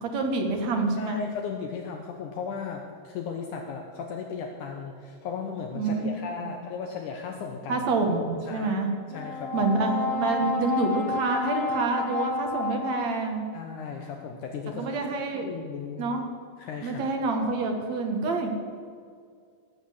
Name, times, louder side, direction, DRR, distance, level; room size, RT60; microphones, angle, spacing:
voice 1, 0.0-1.2 5.7-6.1 6.4-6.6 7.7-8.9 9.5-13.5 14.8-15.5 16.0-16.3 16.8-18.5, right 3 dB, 55° right, 3 dB, 2.5 m, -27 dB
voice 2, 1.0-7.9 8.5-8.7 9.1-9.5 13.5-15.1 15.3-16.1 16.6-17.0, left 6 dB, 70° left, 3 dB, 2.3 m, -36 dB
Brass instrument, 9.1-13.5, left 3 dB, 25° right, 4.1 m, -30 dB
18.0 x 8.0 x 8.0 m, 2.2 s
omnidirectional pair, 4.1 m